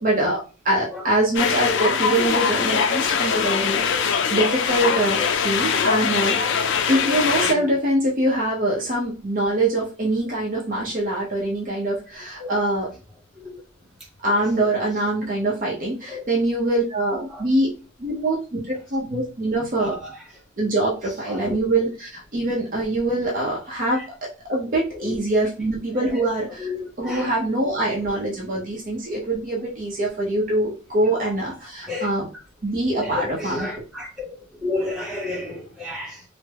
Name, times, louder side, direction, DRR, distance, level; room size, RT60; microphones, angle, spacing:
voice 1, 0.0-6.4 6.9-12.9 14.2-17.7 18.0-20.0 20.6-32.3 32.6-33.7, right 1 dB, 40° right, 0.6 m, -24 dB
sound 1, 1.3-7.5, left 6 dB, 55° left, 0.3 m, -22 dB
voice 2, 4.9-5.3 6.6-6.7 7.4-7.7 12.4-12.5 13.3-13.5 16.1-16.2 17.3-17.4 19.7-20.1 21.2-21.6 23.9-24.1 25.0-25.2 26.1-26.3 26.6-27.3 31.9-32.1 33.0-34.3 34.6-36.2, left 3 dB, ahead, 1.0 m, -32 dB
3.3 x 2.0 x 3.3 m
head